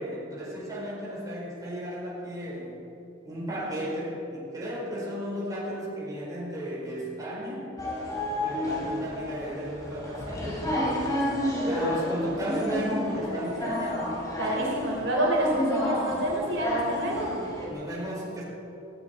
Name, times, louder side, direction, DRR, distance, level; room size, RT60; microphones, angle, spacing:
voice 1, 0.0-2.8 3.2-7.7 8.4-14.2 17.7-18.4, equal, 20° right, -6 dB, 4.7 m, -34 dB
sound 1, 7.8-17.7, left 1 dB, 20° left, 3.5 m, -30 dB
voice 2, 14.4-17.3, right 1 dB, 65° right, -3 dB, 4.3 m, -28 dB
18.0 x 17.0 x 4.5 m, 2.8 s
head